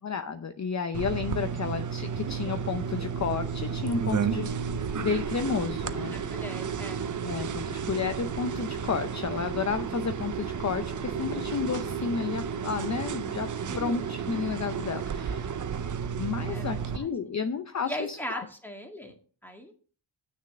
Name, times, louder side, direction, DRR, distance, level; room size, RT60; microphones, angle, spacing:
voice 1, 0.0-4.5 5.0-6.4 7.2-13.5 13.7-15.5 16.2-18.5, left 6 dB, 35° left, 9 dB, 0.7 m, -32 dB
sound 1, 0.9-17.0, right 7 dB, 40° right, 0.7 m, -33 dB
sound 2, 2.5-16.9, right 2 dB, 20° right, 2.3 m, -42 dB
voice 2, 6.1-7.0 13.7-14.0 16.5-17.1 17.9-19.1 19.4-19.7, equal, 5° left, 3 dB, 2.0 m, -39 dB
9.4 x 6.5 x 6.5 m, 0.42 s
wide cardioid pair, 120°, 48 cm